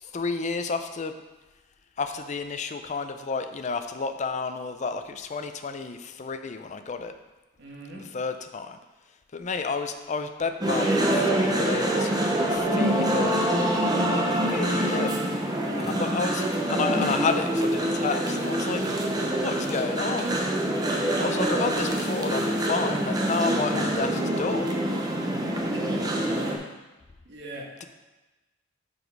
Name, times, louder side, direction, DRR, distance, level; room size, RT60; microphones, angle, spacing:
voice 1, 0.0-1.1 2.0-7.1 7.9-8.8 9.3-12.1 12.5-13.4 14.1-15.2 15.8-18.8 19.4-20.3 21.2-24.8, left 4 dB, 35° left, 8 dB, 0.4 m, -31 dB
voice 2, 7.6-8.1 15.6-16.0 25.7-26.7 27.2-27.7, right 1 dB, 60° right, -1 dB, 1.3 m, -43 dB
sound 1, 10.6-26.6, right 1 dB, 20° right, 0.7 m, -25 dB
6.1 x 5.2 x 4.6 m, 1.1 s
head